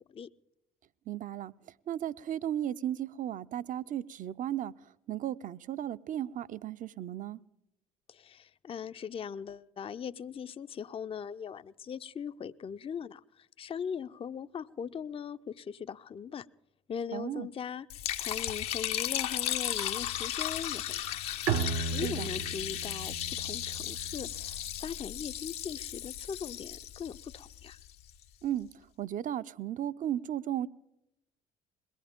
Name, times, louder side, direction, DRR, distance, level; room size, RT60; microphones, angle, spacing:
voice 1, 1.1-1.5 1.9-7.4 17.1-17.5 22.0-22.3 28.4-30.7, right 11 dB, 45° right, 0.6 m, -35 dB
voice 2, 8.1-16.5 16.9-21.4 21.9-27.8, left 7 dB, 30° left, 0.5 m, -40 dB
Liquid, 17.9-28.1, left 11 dB, 75° left, 0.9 m, -35 dB
Bowed string instrument, 21.5-24.9, right 6 dB, 75° right, 1.1 m, -35 dB
22.0 x 18.0 x 3.6 m
hypercardioid pair, 55°, 19 cm